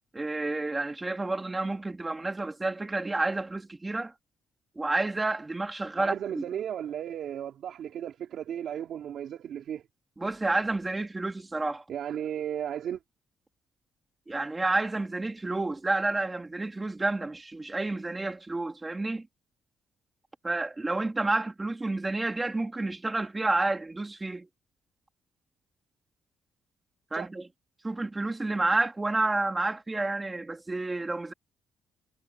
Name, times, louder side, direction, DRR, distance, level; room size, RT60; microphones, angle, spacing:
voice 1, 0.1-4.1 4.7-6.4 10.2-11.8 14.3-19.3 20.4-24.5 27.1-27.5 27.8-31.3, right 2 dB, 15° right, 2.9 m, -30 dB
voice 2, 6.0-9.8 11.9-13.0 27.1-27.3, right 9 dB, 60° right, 3.4 m, -35 dB
cardioid pair, 165°, 0 cm